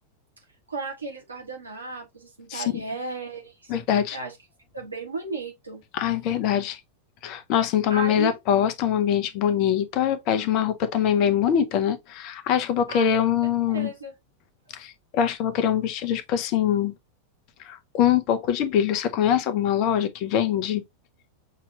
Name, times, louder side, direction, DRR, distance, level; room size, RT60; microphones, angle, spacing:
voice 1, 0.7-3.7 4.1-4.3 4.7-5.8 7.9-8.3 12.9-13.1 13.7-14.1, right 3 dB, 80° right, 1.6 m, -34 dB
voice 2, 2.5-2.8 3.7-4.2 5.9-6.8 7.2-13.9 14.7-16.9 17.6-20.8, left 9 dB, 40° left, 0.7 m, -23 dB
5.8 x 2.9 x 2.9 m
figure-of-eight pair, 90°, 0 cm